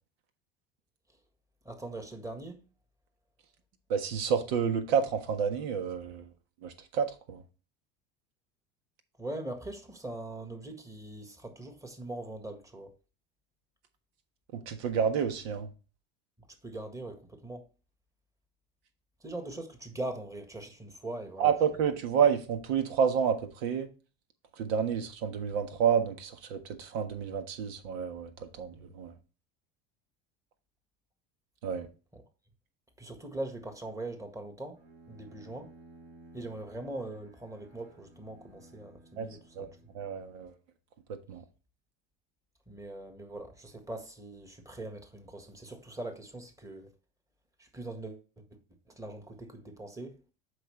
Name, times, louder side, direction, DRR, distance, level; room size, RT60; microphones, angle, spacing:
voice 1, 1.6-2.6 9.2-12.9 16.6-17.6 19.2-21.5 32.1-32.2 33.0-34.8 35.1-35.7 36.3-39.7 42.7-46.9 47.6-48.4 48.9-50.2, right 2 dB, 10° right, 1.6 m, -41 dB
voice 2, 3.9-6.3 6.6-7.4 14.5-15.7 21.4-23.9 24.6-29.1 31.6-31.9 39.2-39.7 39.9-40.5 41.1-41.4, right 7 dB, 80° right, 1.5 m, -29 dB
Bowed string instrument, 34.7-40.6, right 1 dB, 60° right, 4.0 m, -56 dB
7.8 x 5.5 x 3.3 m
supercardioid pair, 110°, 30 cm